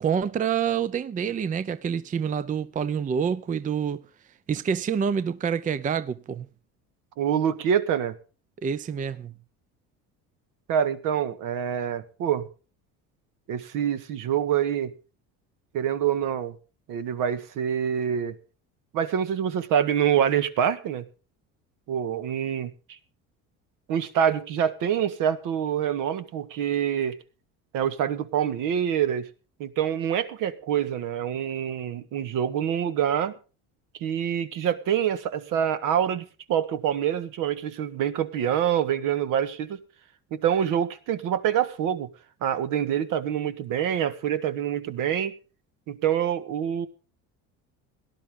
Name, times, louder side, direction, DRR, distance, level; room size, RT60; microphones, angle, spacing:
voice 1, 0.0-4.0 4.5-6.4 8.6-9.3, right 7 dB, 25° right, 0.6 m, -27 dB
voice 2, 7.2-8.2 10.7-12.5 13.5-14.9 15.7-16.6 16.9-18.4 18.9-21.0 21.9-23.0 23.9-27.2 27.7-29.3 29.6-33.3 34.0-39.8 40.3-42.1 42.4-45.3 45.9-46.9, right 9 dB, 65° right, 1.7 m, -26 dB
18.0 x 11.5 x 3.7 m
cardioid pair, 125°, 34 cm